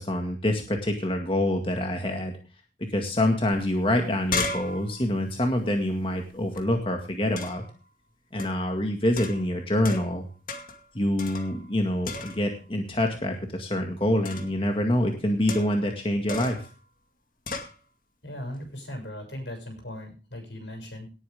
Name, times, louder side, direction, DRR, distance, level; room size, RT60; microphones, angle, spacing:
voice 1, 0.0-2.3 2.9-7.6 8.3-10.3 10.9-16.7, left 1 dB, 30° left, 3 dB, 2.0 m, -26 dB
sound 1, 3.5-3.6 3.9-6.6 7.4-7.7 8.4-8.7 9.2-10.2 10.5-10.8 11.2-11.8 12.0-12.6 14.2-14.6 15.5-15.9 16.3-16.7 17.5-17.8, left 3 dB, 50° left, 2.2 m, -35 dB
voice 2, 18.2-21.1, left 1 dB, 80° left, 4 dB, 7.0 m, -38 dB
18.0 x 9.1 x 3.6 m, 0.34 s
head